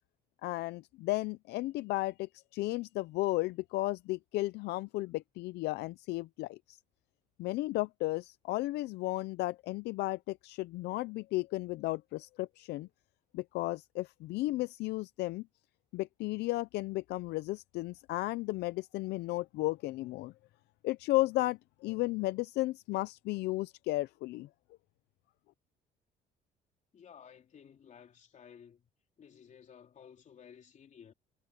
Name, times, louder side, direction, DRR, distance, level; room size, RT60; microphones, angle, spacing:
voice 1, 0.4-6.8 7.4-12.9 13.3-15.4 15.9-20.3 20.8-24.5, left 19 dB, 80° left, 0.5 m, -34 dB
voice 2, 26.9-28.9 29.2-31.1, left 8 dB, 45° left, 3.6 m, -55 dB
cardioid pair, 110°, 17 cm